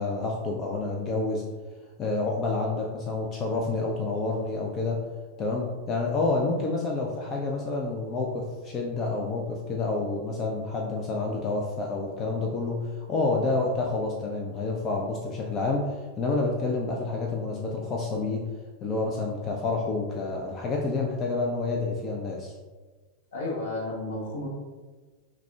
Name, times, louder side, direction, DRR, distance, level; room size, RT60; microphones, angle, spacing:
voice 1, 0.0-1.4 2.0-5.0 5.4-18.4 18.8-22.6, left 3 dB, 30° left, -1 dB, 0.4 m, -28 dB
voice 2, 23.3-24.5, left 2 dB, 60° left, -3 dB, 1.0 m, -32 dB
5.8 x 2.1 x 2.3 m, 1.4 s
figure-of-eight pair, 90°, 0 cm